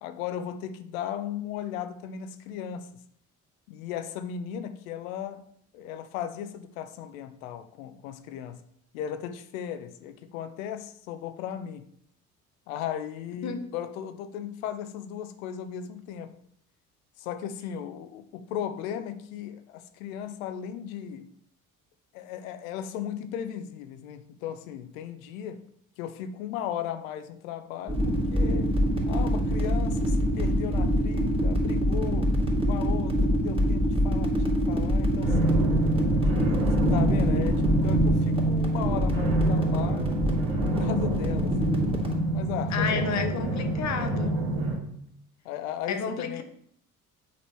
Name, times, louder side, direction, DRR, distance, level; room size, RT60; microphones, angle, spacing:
voice 1, 0.0-2.9 3.7-5.4 5.7-8.6 8.9-11.9 12.7-16.3 17.2-21.3 22.1-25.6 26.0-28.8 29.1-32.3 32.7-35.6 36.3-40.2 40.8-41.6 42.3-43.6 45.4-46.4, left 9 dB, 65° left, 10 dB, 0.8 m, -36 dB
sound 1, 27.9-42.1, equal, 10° right, 2.5 m, -26 dB
sound 2, 35.2-44.8, right 1 dB, 55° right, 2.5 m, -26 dB
voice 2, 42.7-44.3 45.9-46.4, left 6 dB, 40° left, 7 dB, 1.0 m, -31 dB
8.4 x 4.2 x 4.4 m, 0.68 s
figure-of-eight pair, 55°, 44 cm